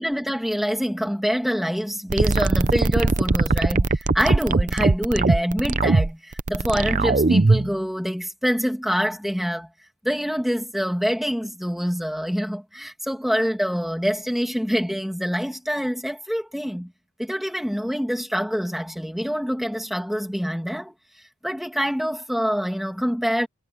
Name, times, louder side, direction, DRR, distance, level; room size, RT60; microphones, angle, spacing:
voice 1, 0.0-9.7 10.0-16.9 17.2-23.5, equal, ahead, 2.1 m, -26 dB
sound 1, 2.1-7.7, right 3 dB, 35° right, 0.6 m, -20 dB
head